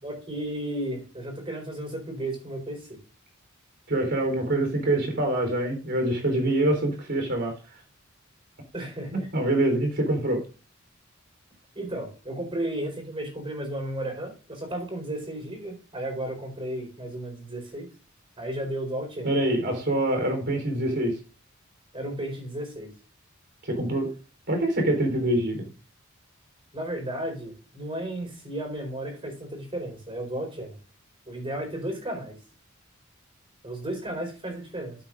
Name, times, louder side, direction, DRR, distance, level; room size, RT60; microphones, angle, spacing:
voice 1, 0.0-3.0 8.7-9.3 11.7-17.9 18.4-19.4 21.9-22.9 26.7-30.8 31.3-32.4 33.6-35.0, right 1 dB, 25° right, 2 dB, 4.6 m, -34 dB
voice 2, 3.9-7.5 9.3-10.4 19.2-21.1 23.6-24.1 24.5-25.7, right 1 dB, 55° right, 4 dB, 3.8 m, -25 dB
12.5 x 8.6 x 2.6 m, 0.35 s
head